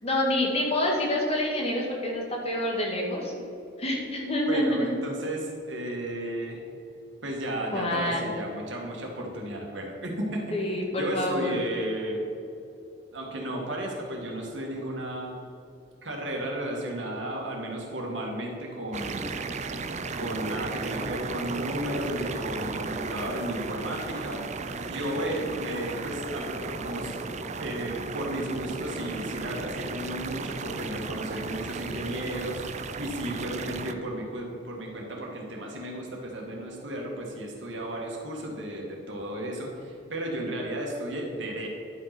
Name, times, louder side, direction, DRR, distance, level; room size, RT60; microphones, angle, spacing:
voice 1, 0.0-3.3 3.8-4.9 7.7-8.3 10.5-11.6, left 1 dB, 35° left, -1 dB, 2.0 m, -27 dB
voice 2, 4.5-6.6 7.2-10.5 10.9-12.2 13.1-15.3 16.0-19.3 20.1-27.1 27.6-41.7, right 1 dB, 75° right, -1 dB, 2.2 m, -34 dB
sound 1, 18.9-33.9, right 4 dB, 40° right, 0.5 m, -35 dB
11.0 x 5.6 x 6.1 m, 2.6 s
head